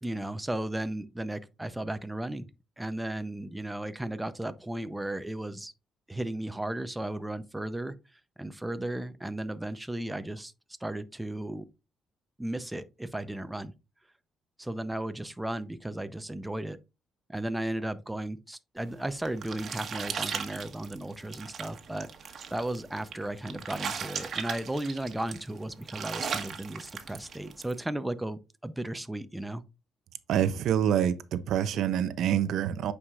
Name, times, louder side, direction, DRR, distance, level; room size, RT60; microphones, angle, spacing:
voice 1, 0.0-2.5 2.8-5.7 6.1-8.0 8.4-10.5 10.8-11.7 12.4-13.7 14.6-16.8 17.3-29.6, right 1 dB, 10° right, 0.7 m, -35 dB
sound 1, 18.9-27.8, right 6 dB, 55° right, 1.3 m, -38 dB
voice 2, 30.3-32.9, right 9 dB, 75° right, 0.6 m, -26 dB
8.5 x 4.8 x 2.4 m
cardioid pair, 90°, 0 cm